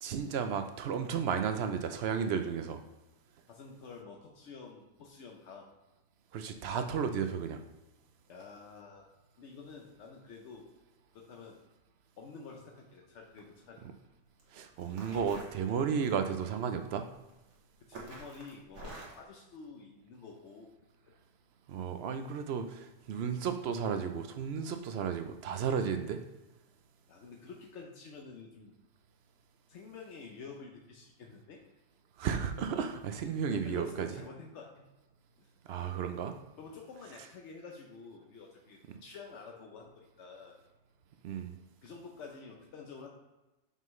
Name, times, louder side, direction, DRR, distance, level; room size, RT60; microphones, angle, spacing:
voice 1, 0.0-2.8 6.3-7.6 14.5-17.1 21.7-26.2 32.2-34.1 35.6-36.3 41.2-41.6, right 7 dB, 65° right, 7 dB, 0.8 m, -33 dB
voice 2, 3.5-5.7 8.3-10.7 11.1-11.6 12.2-13.8 17.9-20.7 27.1-28.7 29.7-31.6 33.5-34.8 35.4-35.5 36.6-40.6 41.8-43.1, left 4 dB, 80° left, 0 dB, 1.0 m, -49 dB
sound 1, 13.3-13.6 14.4-14.5 14.8-16.2 17.3-17.5 17.9-19.3, right 2 dB, 85° right, 1.6 m, -47 dB
5.6 x 5.4 x 3.1 m, 1.0 s
omnidirectional pair, 1.2 m